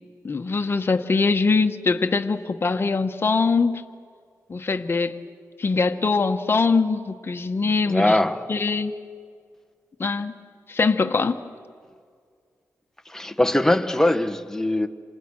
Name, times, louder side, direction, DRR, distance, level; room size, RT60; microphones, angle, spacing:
voice 1, 0.2-3.8 4.5-5.2 5.6-8.2 8.5-8.9 10.0-10.3 10.7-11.4, left 4 dB, 40° left, 7 dB, 1.3 m, -22 dB
voice 2, 7.8-8.5 13.0-14.9, left 1 dB, 10° left, 9 dB, 1.3 m, -21 dB
28.0 x 27.5 x 6.4 m, 2.1 s
wide cardioid pair, 105°, 6 cm